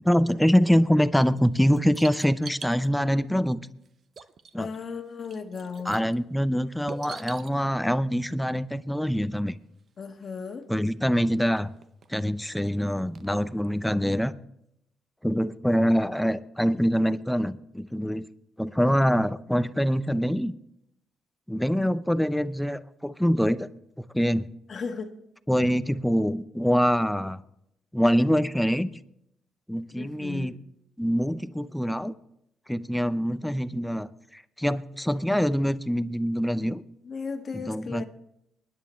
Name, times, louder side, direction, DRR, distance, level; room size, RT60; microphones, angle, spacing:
voice 1, 0.0-3.6 4.5-4.7 5.9-9.6 10.7-11.7 12.1-14.3 15.2-18.3 18.6-20.5 21.5-23.7 24.0-24.5 25.5-27.4 27.9-28.9 29.7-30.5 31.0-32.1 32.7-36.8 37.7-38.0, equal, 5° left, 13 dB, 0.6 m, -24 dB
sound 1, 1.4-2.9 3.8-3.9 4.1-4.7 5.1-6.2 6.9-7.5 9.5-9.6 9.9-10.0 10.6-10.7 11.3-12.2 13.1-13.3 13.6-13.7, right 5 dB, 50° right, 0.7 m, -43 dB
voice 2, 4.6-6.0 10.0-10.7 24.7-25.2 30.0-30.6 37.0-38.0, left 5 dB, 45° left, 5 dB, 1.5 m, -36 dB
24.5 x 10.5 x 3.2 m, 0.79 s
cardioid pair, 90°, 0 cm